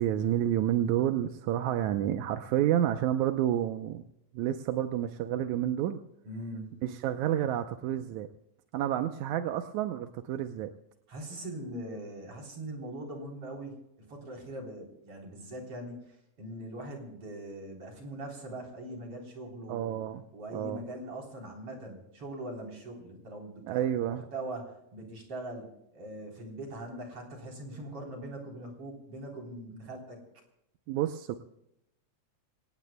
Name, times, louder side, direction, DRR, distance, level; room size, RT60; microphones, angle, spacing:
voice 1, 0.0-4.0 4.3-6.0 6.8-8.3 8.7-10.7 19.7-20.2 20.5-20.8 23.7-24.3 30.9-31.4, right 11 dB, 85° right, 7 dB, 2.1 m, -29 dB
voice 2, 6.3-6.7 11.1-16.1 16.4-20.0 20.3-30.2, right 1 dB, 50° right, 1 dB, 4.6 m, -41 dB
26.0 x 18.0 x 2.2 m, 0.81 s
omnidirectional pair, 3.3 m